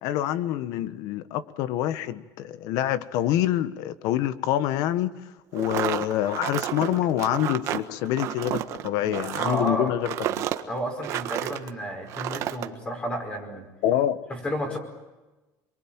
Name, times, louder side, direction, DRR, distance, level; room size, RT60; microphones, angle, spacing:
voice 1, 0.0-5.1 5.5-10.5 13.8-14.2, left 12 dB, 60° left, 14 dB, 1.4 m, -26 dB
sound 1, 5.5-11.7 12.1-12.7, right 12 dB, 45° right, 1.5 m, -31 dB
voice 2, 9.0-10.0 10.7-13.7 14.3-14.8, equal, 15° left, 4 dB, 5.1 m, -31 dB
28.5 x 23.0 x 9.0 m, 1.1 s
cardioid pair, 180°, 7 cm